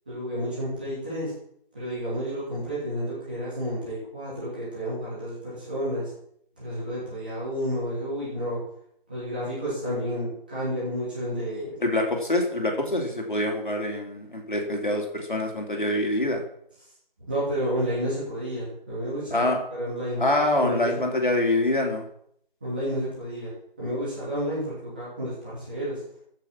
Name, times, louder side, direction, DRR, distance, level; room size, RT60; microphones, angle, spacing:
voice 1, 0.1-1.3 1.7-6.1 6.6-8.6 9.1-11.7 17.2-20.2 20.6-21.2 22.6-23.5 23.8-26.0, equal, 10° right, -10 dB, 3.1 m, -31 dB
voice 2, 11.8-16.4 19.3-19.6 20.2-22.0, left 1 dB, 60° left, 1 dB, 3.5 m, -25 dB
15.0 x 7.0 x 5.9 m, 0.68 s
figure-of-eight pair, 180°, 29 cm